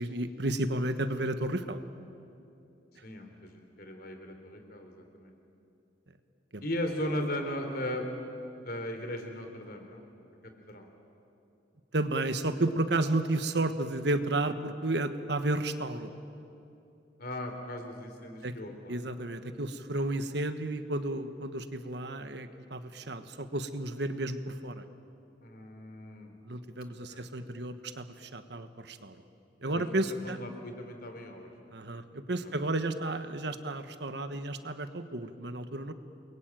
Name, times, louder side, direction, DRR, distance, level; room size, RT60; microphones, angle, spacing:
voice 1, 0.0-1.8 2.9-3.0 6.5-6.6 11.9-16.1 18.4-18.5 18.9-24.8 26.4-29.2 29.6-30.4 31.7-35.9, right 2 dB, 60° right, 10 dB, 1.3 m, -32 dB
voice 2, 3.0-5.3 6.6-8.1 8.6-10.0 10.7-10.9 17.2-19.0 25.4-26.3 26.8-27.3 29.7-31.5 32.4-32.9, left 1 dB, 50° left, 5 dB, 3.4 m, -38 dB
29.5 x 22.0 x 9.0 m, 2.7 s
head